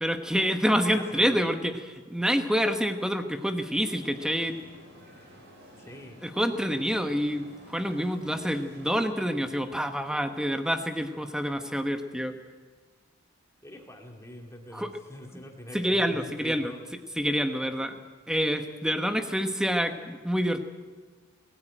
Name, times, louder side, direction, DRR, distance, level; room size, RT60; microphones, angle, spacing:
voice 1, 0.0-4.6 6.2-12.4 14.7-14.9 15.7-16.7 17.2-18.0 18.3-20.6, equal, 5° right, 7 dB, 1.1 m, -27 dB
voice 2, 0.9-1.5 5.8-6.3 13.6-16.8, left 1 dB, 15° left, 1 dB, 2.4 m, -44 dB
sound 1, 3.8-8.9, equal, 50° right, 5.4 m, -51 dB
21.0 x 14.0 x 9.2 m, 1.5 s
head